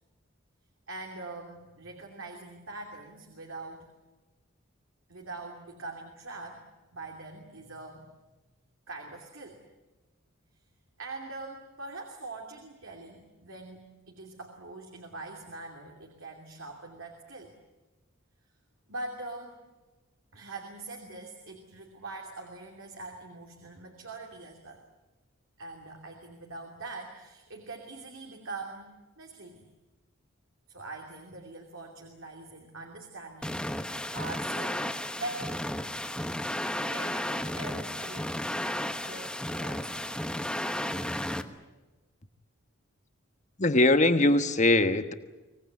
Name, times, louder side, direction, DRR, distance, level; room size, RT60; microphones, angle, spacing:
voice 1, 0.9-3.9 5.1-6.6 6.9-8.1 8.9-9.6 11.0-17.5 18.9-19.6 20.3-24.8 25.6-28.9 29.2-29.7 30.7-33.7 34.1-35.6 36.9-38.6 39.0-40.4, right 2 dB, 70° right, 2 dB, 2.9 m, -43 dB
sound 1, 33.4-41.4, left 1 dB, 5° left, 1.0 m, -33 dB
voice 2, 43.6-45.1, left 2 dB, 35° left, 9 dB, 1.3 m, -22 dB
25.0 x 18.5 x 9.6 m, 1.2 s
head